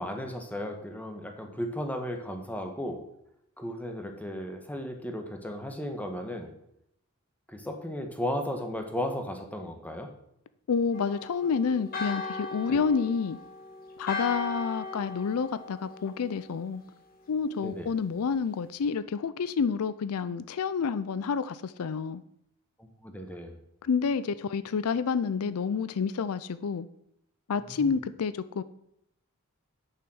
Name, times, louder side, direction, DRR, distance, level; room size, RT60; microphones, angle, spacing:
voice 1, 0.0-3.0 3.6-6.5 7.5-10.1 12.7-12.8 17.6-17.9 22.8-23.6 27.7-28.0, left 1 dB, 5° left, 4 dB, 1.3 m, -35 dB
voice 2, 10.7-13.4 14.0-16.8 17.3-22.2 23.8-26.9 27.5-28.6, left 5 dB, 75° left, 15 dB, 0.4 m, -29 dB
Church bell, 10.9-16.6, left 3 dB, 40° left, 1.4 m, -38 dB
8.9 x 6.9 x 6.3 m, 0.77 s
head